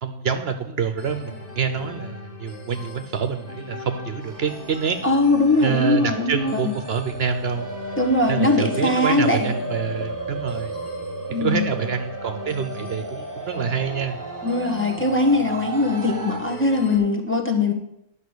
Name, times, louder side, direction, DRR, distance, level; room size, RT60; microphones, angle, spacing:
voice 1, 0.0-5.0 5.6-7.7 8.3-10.7 11.4-14.2, right 6 dB, 60° right, 8 dB, 1.0 m, -26 dB
sound 1, 1.0-17.0, left 2 dB, 35° left, 2.1 m, -39 dB
sound 2, 4.2-16.4, right 2 dB, 25° right, 0.5 m, -34 dB
voice 2, 5.0-6.7 8.0-9.5 11.3-11.7 14.4-17.7, left 2 dB, 10° left, 1 dB, 1.3 m, -21 dB
10.5 x 5.4 x 8.0 m, 0.79 s
omnidirectional pair, 1.2 m